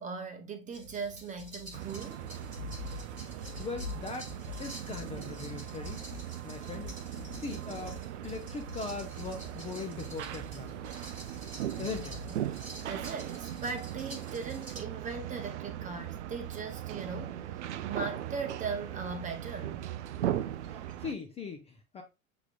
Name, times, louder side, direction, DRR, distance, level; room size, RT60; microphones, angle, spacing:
voice 1, 0.0-2.3 3.5-3.7 12.3-19.8 20.9-21.0, right 4 dB, 20° right, 0.8 m, -39 dB
sound 1, 0.7-14.8, left 2 dB, 90° right, 1.3 m, -46 dB
sound 2, 1.7-21.1, right 11 dB, 55° right, 0.5 m, -39 dB
voice 2, 3.6-4.3 4.6-6.0 6.4-6.9 7.4-10.7 11.8-12.2 20.7-22.0, left 4 dB, 15° left, 0.6 m, -40 dB
7.0 x 2.9 x 2.3 m
figure-of-eight pair, 85°, 42 cm